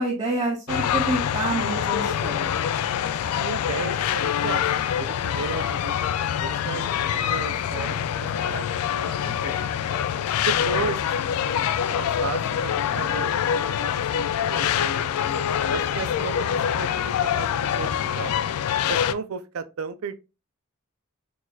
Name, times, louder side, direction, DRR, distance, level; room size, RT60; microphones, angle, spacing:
voice 1, 0.0-2.5, right 2 dB, 20° right, 0.7 m, -27 dB
sound 1, 0.7-19.1, left 9 dB, 85° left, 0.3 m, -25 dB
voice 2, 3.3-6.1 6.4-9.5 10.5-11.6 11.9-13.7 14.1-14.7 15.7-16.5 16.7-18.4 18.9-20.1, right 5 dB, 70° right, 0.5 m, -34 dB
6.2 x 2.5 x 2.3 m
head